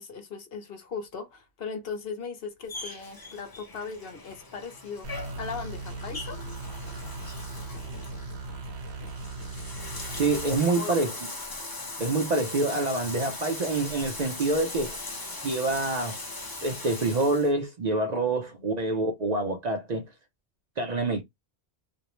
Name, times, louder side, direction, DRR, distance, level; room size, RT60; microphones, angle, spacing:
voice 1, 0.0-5.1 5.4-6.4 10.7-11.0 18.3-18.7, left 5 dB, 65° left, 0.9 m, -38 dB
Bathtub (filling or washing), 2.7-17.5, left 2 dB, 25° left, 0.6 m, -39 dB
sound 1, 5.0-10.6, right 3 dB, 85° right, 0.9 m, -38 dB
voice 2, 10.2-11.1 12.0-15.0 15.4-16.2 16.6-20.1 20.8-21.2, right 2 dB, 50° right, 0.6 m, -26 dB
2.5 x 2.0 x 2.9 m
omnidirectional pair, 1.1 m